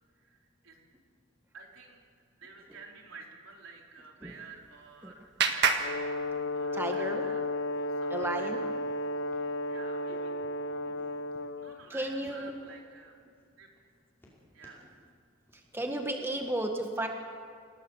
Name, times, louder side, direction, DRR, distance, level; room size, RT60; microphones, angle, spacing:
voice 1, 0.1-0.8 1.5-2.0 2.3-7.5 7.7-8.5 9.7-10.3 11.6-13.1 13.6-13.7 14.5-14.9, right 4 dB, 80° right, 0 dB, 4.0 m, -51 dB
Clapping, 4.3-6.9, right 5 dB, 55° right, 1.7 m, -32 dB
Brass instrument, 5.8-11.8, left 1 dB, 70° left, 0.7 m, -33 dB
voice 2, 6.7-7.3 8.1-8.7 11.9-12.6 15.5-17.1, right 1 dB, 10° right, 3 dB, 1.6 m, -33 dB
sound 1, 7.2-7.3 7.5-7.9 8.2-8.4 8.8-9.0 9.3-10.2 10.7-11.3 11.8-12.8 13.2-13.4 13.7-14.8 15.5-15.7, equal, 10° left, 5.0 m, -59 dB
27.5 x 18.5 x 7.2 m, 2.1 s
head